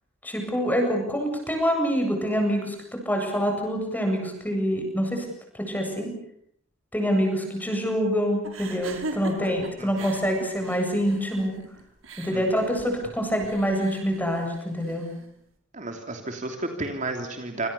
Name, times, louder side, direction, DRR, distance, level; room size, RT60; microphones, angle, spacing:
voice 1, 0.2-5.3 5.5-6.1 6.9-11.6 12.2-15.1, equal, 10° left, 3 dB, 7.9 m, -26 dB
Woman Insane Giggles, 8.4-15.3, right 2 dB, 85° right, 5.3 m, -40 dB
voice 2, 12.3-12.6 15.7-17.7, right 2 dB, 40° right, 4 dB, 3.1 m, -32 dB
27.5 x 27.0 x 7.0 m, 0.70 s
head